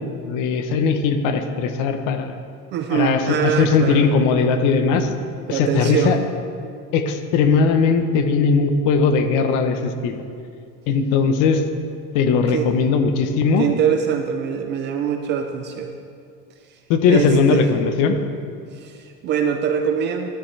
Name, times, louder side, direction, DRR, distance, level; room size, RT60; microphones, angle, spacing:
voice 1, 0.0-2.3 2.9-5.1 5.5-6.2 6.9-10.2 10.9-11.6 12.1-13.7 16.9-18.2, left 5 dB, 50° left, 7 dB, 0.9 m, -19 dB
voice 2, 2.7-4.1 5.5-6.2 12.5-12.7 13.6-16.0 17.1-17.6 18.7-20.3, right 8 dB, 30° right, 5 dB, 0.4 m, -23 dB
12.5 x 10.5 x 3.3 m, 2.3 s
cardioid pair, 165°, 39 cm